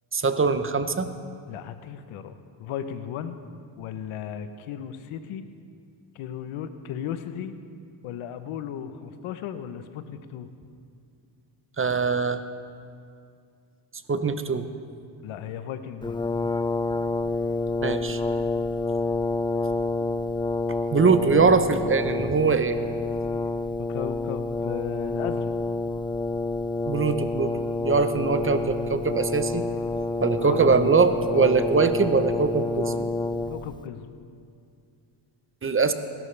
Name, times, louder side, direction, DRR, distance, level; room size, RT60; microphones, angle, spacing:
voice 1, 0.1-1.1 11.8-12.4 14.1-14.7 17.8-18.2 20.9-22.8 26.8-27.5 27.8-29.7 30.2-33.1 35.6-35.9, right 4 dB, 25° right, 9 dB, 0.8 m, -22 dB
voice 2, 1.5-3.4 3.8-5.4 6.1-7.5 8.0-10.5 15.2-16.2 23.8-25.5 30.4-30.8 33.5-34.1, left 9 dB, 85° left, 10 dB, 0.9 m, -36 dB
Brass instrument, 16.0-33.8, left 3 dB, 10° left, 0.4 m, -28 dB
21.5 x 12.5 x 3.3 m, 2.3 s
cardioid pair, 80°, 48 cm